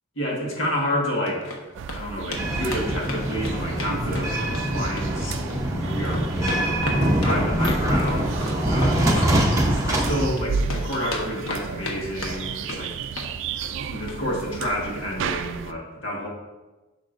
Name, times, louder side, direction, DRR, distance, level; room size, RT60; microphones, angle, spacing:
voice 1, 0.2-1.6 1.9-4.4 4.6-5.4 5.7-6.8 7.1-9.4 9.8-13.0 13.9-16.3, equal, 60° left, -2 dB, 1.6 m, -29 dB
sound 1, 1.0-1.6 1.9-2.0 2.3-2.4 2.7-4.7 5.0-5.6 5.9-10.4 10.7-12.0 12.2-12.8 13.1-13.3 13.6-13.8 14.1-14.2 14.5-14.6, left 1 dB, 80° left, 1.1 m, -33 dB
sound 2, 1.7-15.7, right 5 dB, 65° right, 0.3 m, -33 dB
sound 3, 2.4-10.3, equal, 15° right, 0.9 m, -24 dB
10.0 x 5.3 x 2.6 m, 1.1 s
head